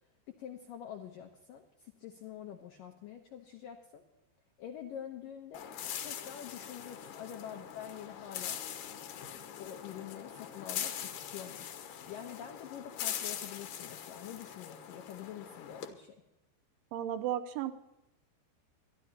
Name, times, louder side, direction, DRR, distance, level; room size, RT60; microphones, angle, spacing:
voice 1, 0.3-4.0 4.6-5.7 6.0-8.6 9.6-11.7 12.1-16.2, left 9 dB, 85° left, 4 dB, 1.9 m, -46 dB
sound 1, 5.5-15.9, left 9 dB, 70° left, 2.2 m, -42 dB
voice 2, 16.9-17.7, right 11 dB, 85° right, 9 dB, 3.2 m, -34 dB
24.0 x 12.5 x 2.9 m, 0.92 s
omnidirectional pair, 5.3 m